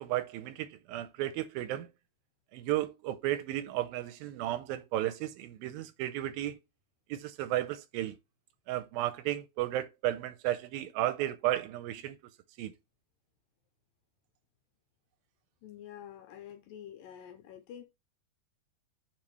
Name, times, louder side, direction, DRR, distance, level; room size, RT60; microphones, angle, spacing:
voice 1, 0.0-1.9 2.5-6.6 7.1-8.2 8.7-12.2 12.6-12.7, right 14 dB, 80° right, 2.3 m, -33 dB
voice 2, 15.6-17.8, left 10 dB, 75° left, 2.2 m, -47 dB
7.3 x 5.1 x 3.2 m
omnidirectional pair, 4.5 m